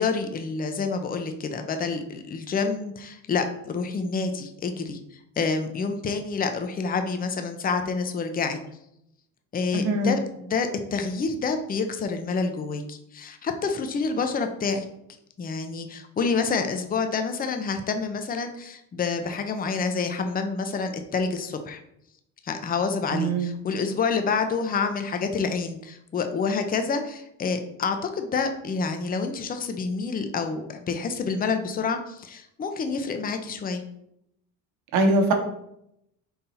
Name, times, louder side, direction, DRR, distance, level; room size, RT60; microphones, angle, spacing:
voice 1, 0.0-5.0 5.4-8.6 9.5-14.8 15.4-21.8 22.4-33.8, left 4 dB, 25° left, 6 dB, 0.5 m, -28 dB
voice 2, 9.7-10.1 23.1-23.5 34.9-35.3, right 2 dB, 70° right, 4 dB, 1.0 m, -22 dB
3.9 x 2.8 x 4.1 m, 0.78 s
supercardioid pair, 85°, 39 cm